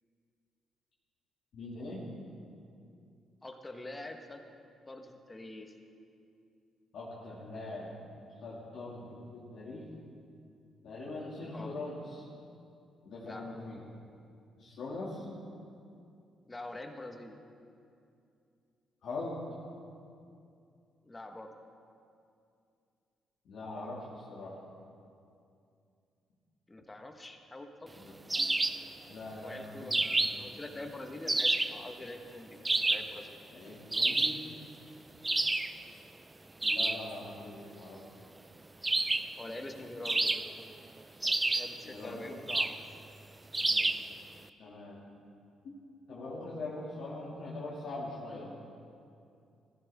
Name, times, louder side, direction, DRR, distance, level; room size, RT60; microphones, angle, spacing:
voice 1, 1.5-2.0 6.9-8.0 8.4-9.1 9.3-10.1 10.8-12.3 13.0-13.8 14.6-15.3 19.0-19.4 23.5-24.6 28.0-28.5 29.1-30.3 33.5-34.4 36.6-38.0 41.8-42.4 43.6-43.9 44.6-45.0 45.6-45.7 46.1-48.5, left 2 dB, 70° left, -6 dB, 2.4 m, -42 dB
voice 2, 3.4-4.4 4.9-5.7 11.5-11.7 13.2-13.5 16.5-17.4 21.0-21.5 26.7-27.9 29.4-32.6 32.9-33.3 39.4-40.3 41.5-43.0 43.7-43.9, left 2 dB, 20° left, 5 dB, 1.4 m, -45 dB
sound 1, 28.3-28.9 29.9-30.5 31.3-31.8 32.6-33.2 33.9-34.5 35.2-35.8 36.6-37.1 38.8-39.4 40.0-40.7 41.2-41.8 42.5-42.8 43.5-44.1, right 2 dB, 20° right, 0.5 m, -29 dB
15.0 x 15.0 x 3.6 m, 2.5 s
supercardioid pair, 70°, 0 cm